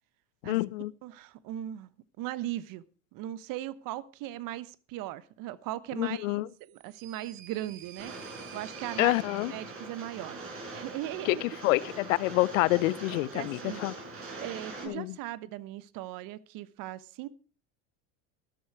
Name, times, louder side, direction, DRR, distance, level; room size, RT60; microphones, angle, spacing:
voice 1, 0.4-0.9 6.0-6.5 9.0-9.5 11.3-11.4 11.6-13.9 14.9-15.1, left 20 dB, 80° left, 0.7 m, -27 dB
voice 2, 1.0-1.9 2.2-2.8 3.1-9.1 9.5-10.4 10.7-11.4 13.1-13.8 14.4-17.3, right 14 dB, 55° right, 1.2 m, -38 dB
sound 1, 6.6-10.3, right 9 dB, 80° right, 2.7 m, -51 dB
Rain, 8.0-14.9, right 3 dB, 35° right, 6.9 m, -42 dB
13.0 x 12.0 x 4.7 m
supercardioid pair, 95°, 39 cm